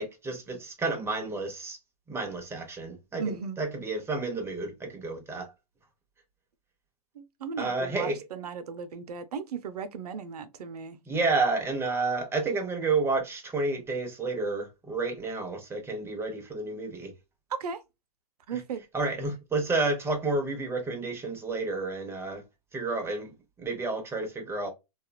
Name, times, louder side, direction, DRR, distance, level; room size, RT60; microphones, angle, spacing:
voice 1, 0.0-1.8 2.1-5.5 7.6-8.2 11.1-17.1 18.5-18.6 18.9-22.4 22.7-24.7, right 3 dB, 10° right, 0.9 m, -30 dB
voice 2, 3.2-3.6 7.2-11.0 17.5-17.8 18.5-18.8, right 6 dB, 80° right, 0.6 m, -36 dB
2.8 x 2.3 x 2.3 m
hypercardioid pair, 115°, 20 cm